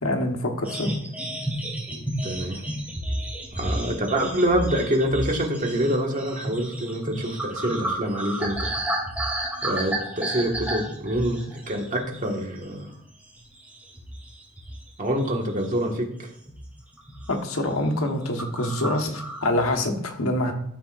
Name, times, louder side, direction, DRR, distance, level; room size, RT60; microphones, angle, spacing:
voice 1, 0.0-0.9 17.3-20.5, left 1 dB, 70° left, 3 dB, 1.4 m, -25 dB
sound 1, 0.6-12.4 12.7-12.9 13.4-14.9 15.2-16.0 16.5-16.7 17.0-17.4 17.7-17.8 18.0-18.1 18.4-19.8, right 1 dB, 5° right, 2.0 m, -32 dB
voice 2, 2.2-2.6 3.5-8.7 9.6-11.4 11.7-12.9 15.0-16.1, right 1 dB, 35° right, 0 dB, 1.7 m, -26 dB
13.5 x 7.0 x 2.6 m, 0.73 s
head